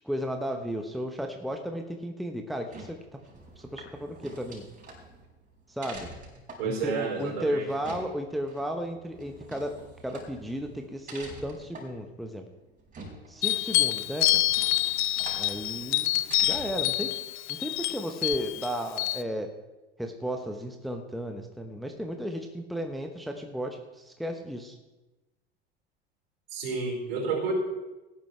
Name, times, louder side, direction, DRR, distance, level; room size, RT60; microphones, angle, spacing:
voice 1, 0.0-3.0 3.6-4.6 5.7-6.1 6.6-9.8 10.0-12.4 13.3-14.4 15.4-16.1 16.4-17.1 17.5-19.5 20.0-24.8, equal, ahead, 4 dB, 1.1 m, -34 dB
sound 1, 2.5-17.0, right 2 dB, 25° right, 4.5 m, -47 dB
voice 2, 6.6-7.7 26.5-27.5, right 5 dB, 65° right, 0 dB, 4.7 m, -30 dB
sound 2, 13.4-19.2, left 17 dB, 45° left, 0.6 m, -27 dB
17.5 x 10.5 x 3.3 m, 1.1 s
figure-of-eight pair, 75°, 32 cm